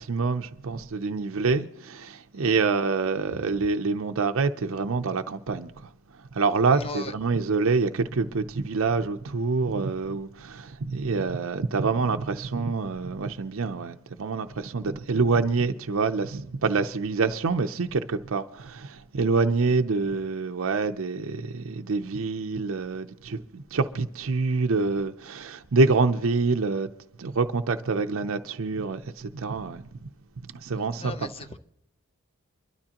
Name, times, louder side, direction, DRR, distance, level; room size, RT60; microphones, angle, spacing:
voice 1, 0.0-5.9 6.3-26.9 27.2-30.1 30.5-31.3, right 4 dB, 65° right, 0.6 m, -26 dB
voice 2, 6.7-7.1 31.0-31.6, left 3 dB, 25° left, 0.6 m, -37 dB
24.5 x 12.5 x 2.9 m
head